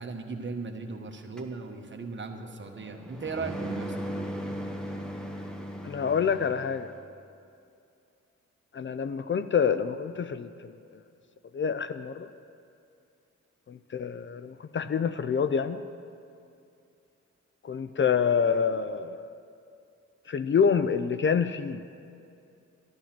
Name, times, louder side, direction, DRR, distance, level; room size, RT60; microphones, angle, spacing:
voice 1, 0.0-4.3, right 4 dB, 40° right, 4 dB, 1.2 m, -37 dB
sound 1, 1.4-7.0, equal, ahead, 1.1 m, -38 dB
voice 2, 5.8-6.9 8.7-10.5 11.5-12.3 13.7-15.8 17.6-19.3 20.3-21.8, left 6 dB, 40° left, 11 dB, 0.4 m, -27 dB
12.0 x 11.5 x 5.9 m, 2.5 s
wide cardioid pair, 100°, 29 cm